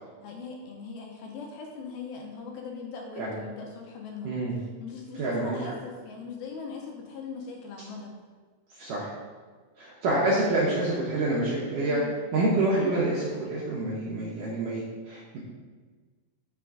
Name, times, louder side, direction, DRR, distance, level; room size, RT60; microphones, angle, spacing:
voice 1, 0.2-4.4 4.8-8.1 11.8-12.1, left 5 dB, 80° left, 1 dB, 2.4 m, -40 dB
voice 2, 4.2-4.6 5.2-5.7 8.8-9.1 9.8-12.0 12.3-15.4, right 2 dB, 80° right, -5 dB, 1.9 m, -27 dB
6.1 x 3.7 x 4.6 m, 1.5 s
omnidirectional pair, 4.7 m